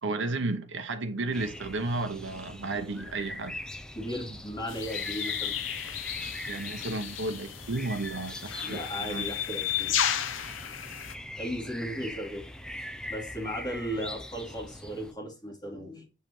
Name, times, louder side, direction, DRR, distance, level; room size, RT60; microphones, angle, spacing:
voice 1, 0.0-3.6 6.5-9.3, right 2 dB, 70° right, 0.8 m, -33 dB
sound 1, 1.3-15.1, left 1 dB, 5° left, 0.5 m, -42 dB
voice 2, 3.9-5.6 8.6-9.9 11.4-12.5 13.1-16.1, equal, 20° left, 2.9 m, -36 dB
sound 2, 4.7-11.1, left 10 dB, 80° left, 0.7 m, -33 dB
7.3 x 4.8 x 3.1 m
head